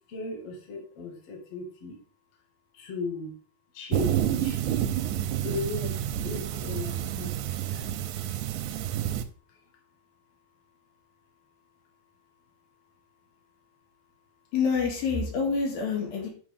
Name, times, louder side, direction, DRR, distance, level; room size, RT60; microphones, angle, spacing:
voice 1, 0.1-2.0 2.7-3.3 3.7-4.6 5.4-7.3 7.7-8.0 9.5-9.7, left 3 dB, 45° left, 1 dB, 2.4 m, -36 dB
sound 1, 3.9-9.2, right 11 dB, 75° right, 1.9 m, -29 dB
voice 2, 14.5-16.3, left 5 dB, 80° left, 1 dB, 3.6 m, -27 dB
10.0 x 5.6 x 3.5 m, 0.41 s
omnidirectional pair, 4.1 m